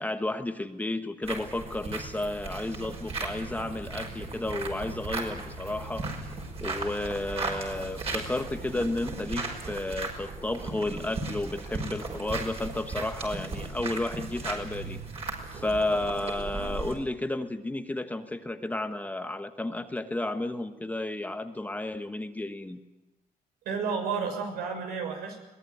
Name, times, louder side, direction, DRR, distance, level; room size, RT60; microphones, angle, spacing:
voice 1, 0.0-6.3 6.6-15.0 15.5-22.8, left 2 dB, 10° left, 8 dB, 1.2 m, -32 dB
sound 1, 1.2-16.9, right 3 dB, 40° right, 5.8 m, -36 dB
voice 2, 23.6-25.4, right 5 dB, 90° right, 4 dB, 6.4 m, -31 dB
23.0 x 19.0 x 9.5 m, 1.0 s
cardioid pair, 135°, 16 cm